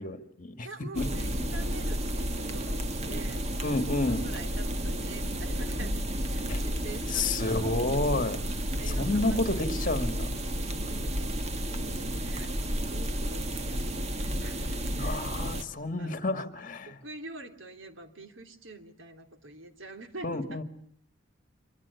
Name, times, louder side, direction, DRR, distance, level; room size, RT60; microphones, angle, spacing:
voice 1, 0.0-0.7 0.9-1.4 3.6-4.3 6.5-6.6 7.1-8.4 8.9-10.3 14.9-17.0 20.2-20.6, left 2 dB, 45° left, 9 dB, 2.3 m, -30 dB
voice 2, 0.6-7.8 8.7-9.4 10.5-11.3 11.7-16.2 16.9-20.6, right 2 dB, 80° right, 7 dB, 3.2 m, -46 dB
sound 1, 1.0-15.6, equal, 35° right, 1.9 m, -32 dB
26.5 x 24.0 x 8.4 m, 0.65 s
head